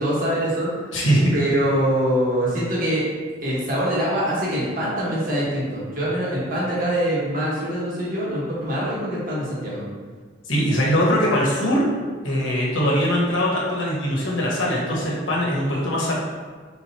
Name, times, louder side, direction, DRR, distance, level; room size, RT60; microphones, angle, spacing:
voice 1, 0.0-1.0 1.3-3.1 3.4-9.8, equal, 45° right, -7 dB, 1.5 m, -24 dB
voice 2, 0.9-1.3 10.5-11.8 12.2-16.1, equal, 80° left, -5 dB, 1.2 m, -21 dB
4.4 x 3.8 x 2.9 m, 1.5 s
head